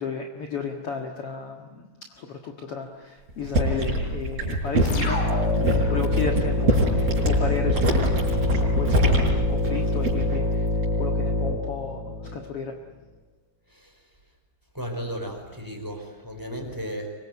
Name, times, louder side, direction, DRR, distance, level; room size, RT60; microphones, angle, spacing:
voice 1, 0.0-10.7 10.9-12.7, left 5 dB, 55° left, 3 dB, 1.7 m, -34 dB
sound 1, 3.3-10.4 10.7-11.1, right 1 dB, 35° right, 6.2 m, -25 dB
sound 2, 4.9-12.4, left 2 dB, 90° left, 7.6 m, -25 dB
voice 2, 14.7-17.1, equal, 5° right, 4 dB, 4.3 m, -34 dB
25.0 x 23.0 x 9.8 m, 1.2 s
omnidirectional pair, 5.2 m